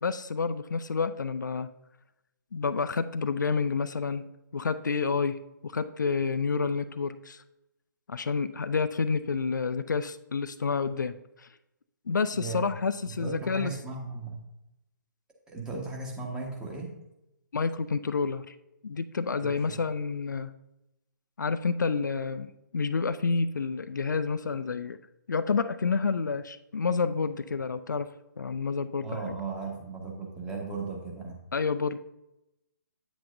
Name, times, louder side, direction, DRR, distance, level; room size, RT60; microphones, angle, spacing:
voice 1, 0.0-1.7 2.5-7.4 8.1-11.5 12.1-13.7 17.5-18.6 18.8-20.5 21.4-25.0 25.3-28.1 28.4-29.2 31.5-32.0, left 5 dB, 70° left, 12 dB, 0.4 m, -29 dB
voice 2, 12.3-12.6 13.2-14.4 15.5-16.9 19.4-19.5 29.0-31.3, right 4 dB, 5° right, -1 dB, 1.4 m, -36 dB
9.0 x 7.8 x 2.6 m, 0.91 s
figure-of-eight pair, 135°, 10 cm